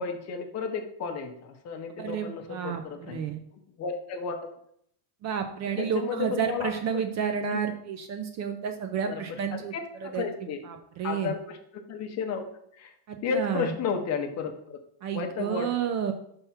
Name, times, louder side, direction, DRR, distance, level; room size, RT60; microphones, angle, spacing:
voice 1, 0.0-3.2 3.8-4.5 5.8-7.0 7.5-7.6 9.1-9.4 9.7-10.7 11.0-12.4 12.7-12.9 13.2-14.8 15.1-15.7, left 5 dB, 35° left, 4 dB, 0.7 m, -33 dB
voice 2, 2.0-3.4 5.2-9.7 10.1-10.2 10.7-11.3 13.1-13.7 15.0-16.1, right 7 dB, 40° right, 6 dB, 0.4 m, -30 dB
5.6 x 3.6 x 5.6 m, 0.70 s
cardioid pair, 180°, 44 cm